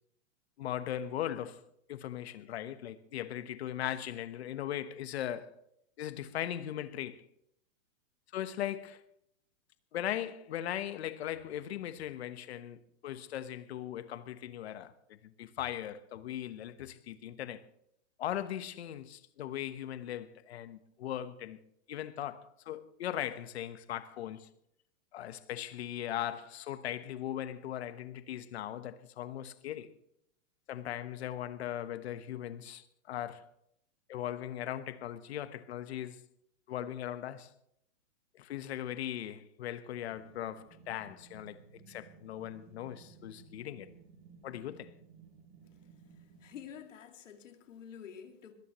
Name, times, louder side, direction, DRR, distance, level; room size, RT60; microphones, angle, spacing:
voice 1, 0.6-5.6 6.0-7.2 8.3-9.0 9.9-17.6 18.2-21.6 21.9-24.5 25.1-29.9 30.7-33.5 34.1-36.2 36.7-37.5 38.4-41.6 41.9-43.9 44.4-44.9, left 11 dB, 55° left, 1.2 m, -39 dB
sound 1, 40.1-46.9, right 5 dB, 25° right, 5.6 m, -57 dB
voice 2, 46.4-48.5, left 8 dB, 70° left, 2.4 m, -48 dB
21.5 x 15.5 x 3.1 m
supercardioid pair, 175°, 39 cm